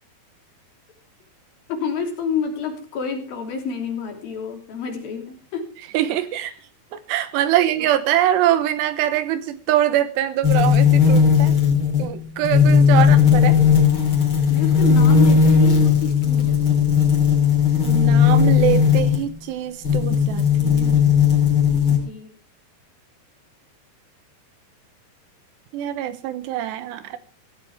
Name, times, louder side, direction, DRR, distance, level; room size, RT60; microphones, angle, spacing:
voice 1, 1.7-5.8 12.9-13.7 14.5-16.9 21.9-22.3, left 6 dB, 60° left, 3 dB, 4.7 m, -29 dB
voice 2, 5.9-6.5 6.9-11.6 12.0-13.6 17.9-21.0 25.7-27.2, right 12 dB, 85° right, 11 dB, 3.3 m, -23 dB
sound 1, 10.4-19.3 19.8-22.0, left 7 dB, 30° left, 3.8 m, -16 dB
16.5 x 16.0 x 3.6 m, 0.34 s
omnidirectional pair, 4.8 m